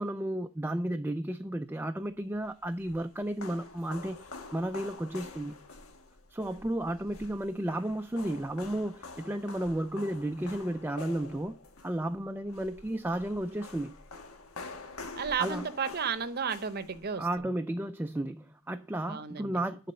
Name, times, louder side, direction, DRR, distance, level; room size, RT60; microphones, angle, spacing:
voice 1, 0.0-4.2 4.5-5.6 6.3-11.6 11.8-14.0 15.4-15.6 17.2-19.9, right 1 dB, 10° right, 0.3 m, -33 dB
sound 1, 2.4-17.4, left 3 dB, 75° left, 1.4 m, -47 dB
voice 2, 15.1-17.5 19.0-19.6, right 6 dB, 45° right, 0.7 m, -33 dB
12.0 x 4.1 x 6.6 m
head